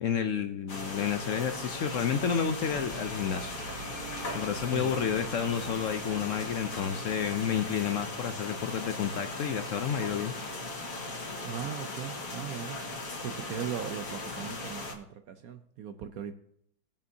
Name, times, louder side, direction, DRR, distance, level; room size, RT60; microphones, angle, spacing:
voice 1, 0.0-3.6 4.3-10.3, left 8 dB, 70° left, 8 dB, 0.7 m, -30 dB
sound 1, 0.7-14.9, left 2 dB, 50° left, 2.0 m, -38 dB
sound 2, 2.3-13.4, right 4 dB, 50° right, 1.6 m, -49 dB
voice 2, 11.4-12.8 13.2-16.3, right 9 dB, 70° right, 9 dB, 0.9 m, -38 dB
21.0 x 7.2 x 2.7 m, 0.70 s
omnidirectional pair, 2.0 m